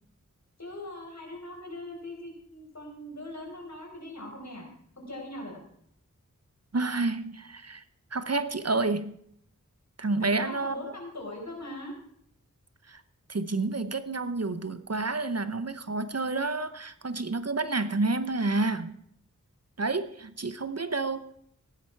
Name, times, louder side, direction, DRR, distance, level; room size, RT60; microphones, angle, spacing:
voice 1, 0.6-4.7 5.0-5.6 10.2-12.0 20.8-20.9, left 1 dB, 55° left, 0 dB, 4.7 m, -41 dB
voice 2, 6.7-7.8 8.1-9.2 10.0-10.8 12.9-13.0 13.3-19.0 19.8-21.3, right 3 dB, 50° right, 12 dB, 0.9 m, -29 dB
15.5 x 11.0 x 4.7 m, 0.68 s
wide cardioid pair, 40°, 32 cm